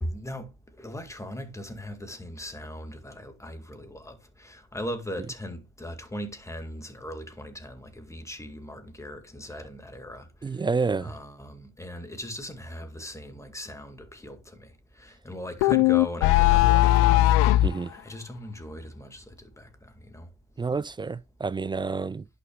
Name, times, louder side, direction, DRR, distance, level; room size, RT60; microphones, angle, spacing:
voice 1, 0.0-10.6 11.0-17.3 17.9-20.3, equal, 10° left, 2.0 m, -39 dB
voice 2, 10.4-11.1 17.6-17.9 20.6-22.2, right 4 dB, 15° right, 0.3 m, -29 dB
sound 1, 15.6-17.8, left 16 dB, 85° left, 0.6 m, -18 dB
11.0 x 6.1 x 2.3 m
supercardioid pair, 80°, 31 cm